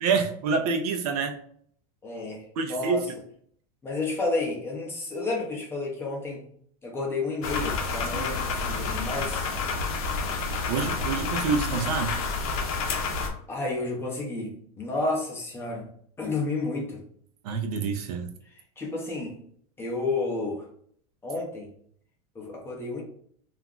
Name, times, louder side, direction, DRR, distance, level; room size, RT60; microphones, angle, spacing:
voice 1, 0.0-1.4 2.6-3.2 8.1-8.3 10.7-12.2 17.4-18.3, right 5 dB, 70° right, 5 dB, 0.5 m, -27 dB
voice 2, 2.0-3.1 3.8-6.4 6.8-9.5 9.9-10.0 13.5-15.9 16.2-17.0 18.8-19.3 19.8-20.6 21.2-21.7 22.3-23.0, left 3 dB, 10° left, -2 dB, 0.5 m, -31 dB
sound 1, 7.4-13.3, left 4 dB, 60° left, 0.6 m, -29 dB
2.4 x 2.1 x 3.5 m, 0.62 s
supercardioid pair, 155°, 20 cm